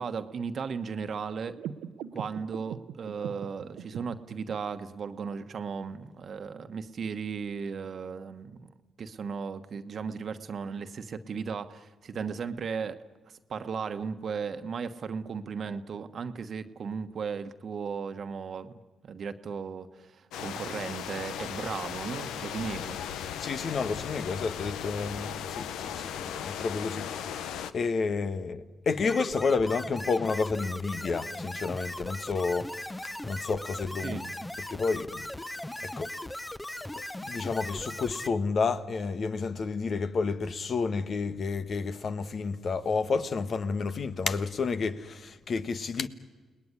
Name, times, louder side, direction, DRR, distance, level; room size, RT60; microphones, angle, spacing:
voice 1, 0.0-1.6 2.1-8.7 9.0-13.0 13.3-23.0 34.0-34.3, right 6 dB, 60° right, 1.3 m, -36 dB
sound 1, 1.5-4.5, right 9 dB, 85° right, 0.9 m, -41 dB
sound 2, 20.3-27.7, left 9 dB, 80° left, 0.8 m, -37 dB
voice 2, 23.4-34.2 34.7-35.3 35.8-36.1 36.9-46.1, left 4 dB, 60° left, 1.4 m, -30 dB
sound 3, 29.0-38.3, left 1 dB, 15° left, 1.0 m, -38 dB
30.0 x 19.5 x 9.8 m
supercardioid pair, 50°, 0 cm